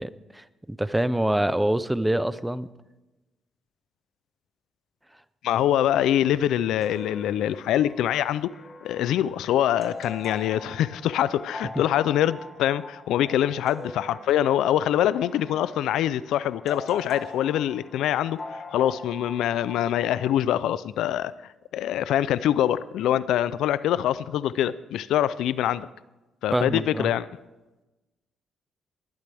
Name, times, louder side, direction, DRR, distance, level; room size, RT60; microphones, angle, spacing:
voice 1, 0.0-2.7 5.5-5.6 26.5-27.1, right 1 dB, 5° right, 15 dB, 0.6 m, -26 dB
voice 2, 5.4-8.5 8.8-18.4 18.7-21.3 21.7-25.9 26.4-27.3, left 11 dB, 85° left, 17 dB, 0.4 m, -24 dB
sound 1, 6.8-20.5, left 3 dB, 30° left, 1.9 m, -42 dB
20.0 x 11.5 x 3.5 m, 1.1 s
cardioid pair, 90°, 0 cm